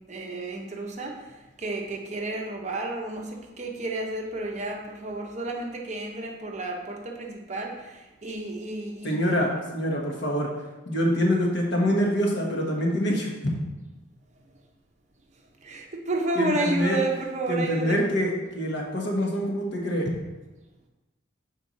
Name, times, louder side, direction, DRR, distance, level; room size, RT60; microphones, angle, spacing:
voice 1, 0.0-9.4 15.6-18.0, right 2 dB, 35° right, 1 dB, 0.8 m, -31 dB
voice 2, 9.0-10.5 10.8-13.3 16.3-17.0 17.5-20.1, equal, 55° left, -1 dB, 1.2 m, -25 dB
6.3 x 4.5 x 4.1 m, 1.1 s
head